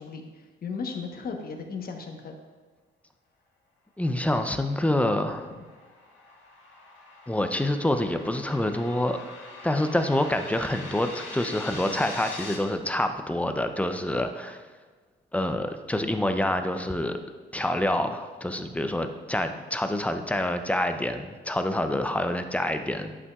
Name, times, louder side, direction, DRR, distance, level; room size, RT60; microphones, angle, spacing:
voice 1, 0.0-2.4 5.5-5.6, left 5 dB, 50° left, 3 dB, 1.1 m, -36 dB
voice 2, 4.0-5.5 7.3-9.2 9.6-14.6 15.3-17.2 17.5-23.2, left 1 dB, 5° left, 7 dB, 0.5 m, -27 dB
sound 1, 5.2-12.5, left 3 dB, 75° left, 1.7 m, -43 dB
11.0 x 5.5 x 2.4 m, 1.4 s
cardioid pair, 90°, 20 cm